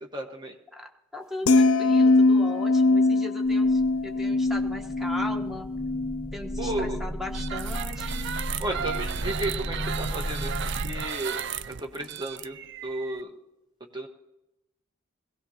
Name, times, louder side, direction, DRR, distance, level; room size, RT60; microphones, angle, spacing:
voice 1, 0.0-0.5 6.6-7.0 8.6-11.4 11.7-12.6 12.8-13.3 13.9-14.1, right 1 dB, 20° right, 3 dB, 1.3 m, -33 dB
voice 2, 0.7-5.7 6.3-8.3, left 1 dB, ahead, 2 dB, 1.1 m, -38 dB
sound 1, 1.5-7.7 8.1-8.4, left 2 dB, 75° left, 0.5 m, -23 dB
sound 2, 3.5-11.0, equal, 35° left, 1.0 m, -35 dB
sound 3, 7.3-13.2, right 8 dB, 55° right, 0.4 m, -34 dB
21.0 x 17.0 x 2.9 m, 0.92 s
head